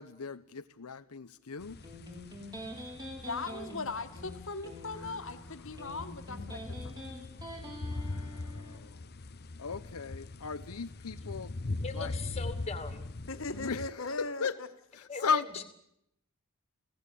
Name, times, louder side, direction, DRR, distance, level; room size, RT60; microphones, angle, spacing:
voice 1, 0.0-1.8 5.1-5.2 7.6-9.0 9.6-11.5 11.9-12.1 13.5-14.5 14.9-15.5, left 5 dB, 90° left, 9 dB, 0.9 m, -36 dB
sound 1, 1.6-13.9, left 2 dB, 45° left, 0.9 m, -41 dB
Electric guitar, 1.8-8.8, equal, 20° right, 6.2 m, -45 dB
voice 2, 3.2-7.1 13.3-14.7, left 3 dB, 60° left, 9 dB, 1.9 m, -39 dB
voice 3, 11.8-13.1 15.1-15.6, left 4 dB, 30° left, 9 dB, 2.5 m, -39 dB
29.5 x 17.0 x 8.5 m, 0.80 s
head